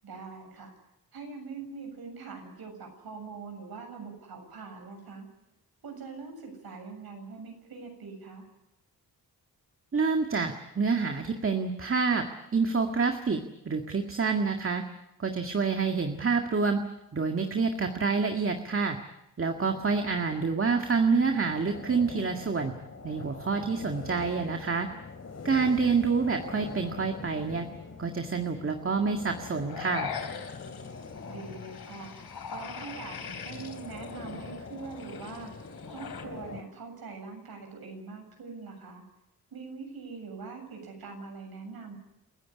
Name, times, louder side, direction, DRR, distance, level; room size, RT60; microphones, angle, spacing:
voice 1, 0.0-0.7 1.1-5.3 5.8-8.4 31.3-32.1 32.5-35.5 35.9-39.0 39.5-42.0, right 4 dB, 75° right, 4 dB, 7.5 m, -43 dB
voice 2, 9.9-12.3 12.5-14.8 15.2-16.8 17.1-19.0 19.4-22.7 23.0-24.9 25.4-27.7 28.0-30.2, right 4 dB, 35° right, 4 dB, 1.9 m, -27 dB
sound 1, 19.7-36.6, left 4 dB, 40° left, 2.8 m, -43 dB
sound 2, 29.6-36.2, left 7 dB, 85° left, 3.3 m, -42 dB
28.5 x 15.0 x 9.8 m, 0.92 s
wide cardioid pair, 110°, 37 cm